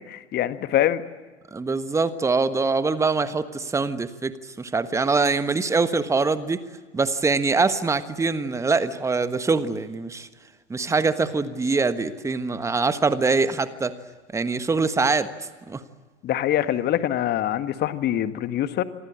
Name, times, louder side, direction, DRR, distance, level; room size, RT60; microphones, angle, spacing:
voice 1, 0.1-1.0 16.2-18.8, left 12 dB, 25° left, 11 dB, 1.6 m, -24 dB
voice 2, 1.5-6.6 6.9-10.3 10.7-13.9 14.3-15.3 15.7-15.8, right 4 dB, 10° right, 13 dB, 1.3 m, -23 dB
27.5 x 24.0 x 8.7 m, 1.4 s
figure-of-eight pair, 95°, 36 cm